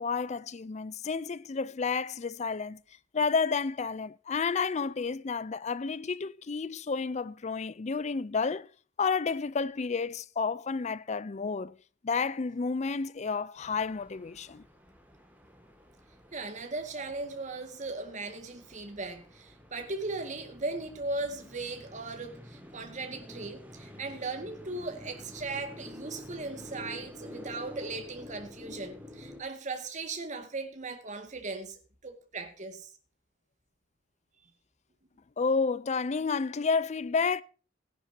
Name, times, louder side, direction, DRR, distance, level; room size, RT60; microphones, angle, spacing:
voice 1, 0.0-2.8 3.1-8.7 9.0-11.8 12.0-14.6 35.4-37.4, left 5 dB, 35° left, 0.4 m, -30 dB
sound 1, 13.6-29.4, left 1 dB, 10° right, 2.1 m, -49 dB
voice 2, 16.3-32.9, right 3 dB, 40° right, 1.9 m, -38 dB
16.5 x 11.0 x 2.8 m
head